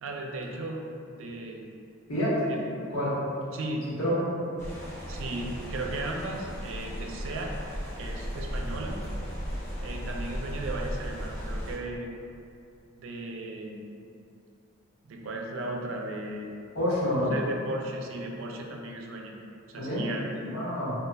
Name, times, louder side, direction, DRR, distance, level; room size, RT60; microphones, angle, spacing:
voice 1, 0.0-1.7 2.5-2.8 3.5-4.0 5.1-7.5 8.0-9.0 9.8-12.1 13.0-13.8 15.1-16.5 17.3-19.3 19.7-20.5, right 2 dB, 65° right, 0 dB, 0.4 m, -36 dB
voice 2, 2.1-2.4 2.9-3.2 4.0-4.3 16.7-17.4 19.8-20.1 20.4-20.9, equal, 80° left, -9 dB, 1.1 m, -27 dB
sound 1, 4.6-11.8, equal, 15° left, 0.5 m, -36 dB
5.0 x 2.3 x 2.2 m, 2.6 s
head